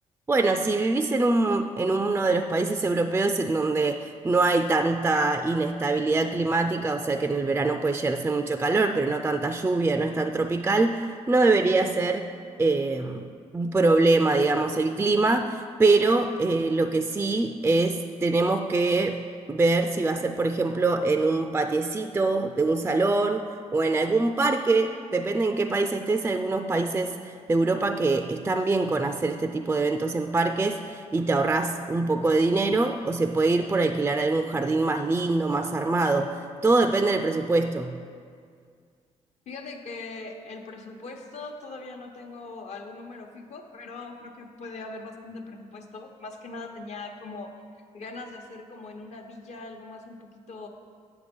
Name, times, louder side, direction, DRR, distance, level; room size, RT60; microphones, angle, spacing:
voice 1, 0.3-12.3 12.6-13.3 13.5-19.2 19.5-23.4 23.7-38.0, right 3 dB, 15° right, 7 dB, 0.3 m, -24 dB
voice 2, 39.5-47.5 47.9-50.7, left 3 dB, 60° left, 3 dB, 1.0 m, -41 dB
8.1 x 6.5 x 5.2 m, 2.1 s
cardioid pair, 95°, 13 cm